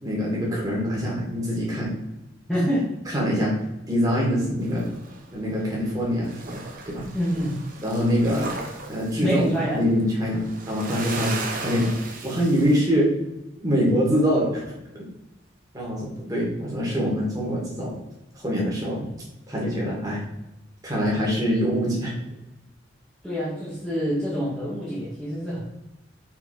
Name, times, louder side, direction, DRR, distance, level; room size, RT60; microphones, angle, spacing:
voice 1, 0.0-1.9 3.1-3.5 3.9-4.8 5.3-6.6 6.9-7.1 7.8-8.5 8.9-9.4 9.7-11.9 12.2-13.1 13.6-14.6 15.7-17.9 18.4-19.1 19.5-20.2 20.8-22.1, equal, 20° right, -5 dB, 2.2 m, -24 dB
voice 2, 2.5-2.9 7.1-7.6 9.2-9.8 23.2-25.6, equal, ahead, -9 dB, 1.5 m, -26 dB
sound 1, 4.6-6.0 6.3-12.8, right 3 dB, 45° right, 1.1 m, -36 dB
5.8 x 4.1 x 4.4 m, 0.93 s
head